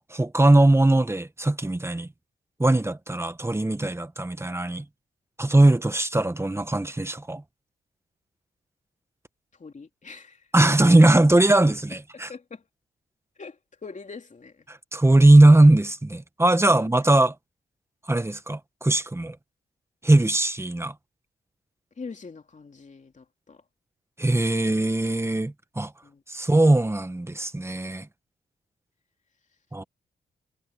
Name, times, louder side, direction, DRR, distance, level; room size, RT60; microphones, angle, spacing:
voice 1, 0.0-2.1 2.6-4.8 5.4-7.4 10.5-12.3 14.7-17.3 18.1-19.3 20.0-20.9 24.2-25.9 26.3-28.1 29.7-29.8, right 2 dB, 15° right, 1.4 m, -20 dB
voice 2, 9.6-10.5 12.1-12.6 13.4-14.7 16.6-16.9 22.0-23.6 26.0-26.2, left 4 dB, 40° left, 3.2 m, -43 dB
cardioid pair, 80°, 18 cm